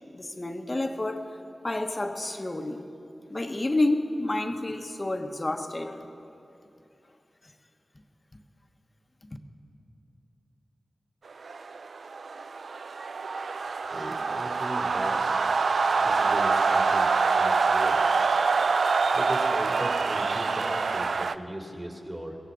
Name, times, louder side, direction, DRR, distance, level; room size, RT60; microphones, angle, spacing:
voice 1, 0.1-1.3 1.6-2.8 3.3-6.1, left 2 dB, 35° left, 6 dB, 1.2 m, -29 dB
sound 1, 11.4-21.3, right 4 dB, 75° right, 0.4 m, -25 dB
voice 2, 13.9-15.3 16.0-18.0 19.1-22.4, right 1 dB, 20° right, 0 dB, 2.9 m, -37 dB
22.5 x 16.5 x 3.9 m, 2.9 s
cardioid pair, 50°, 0 cm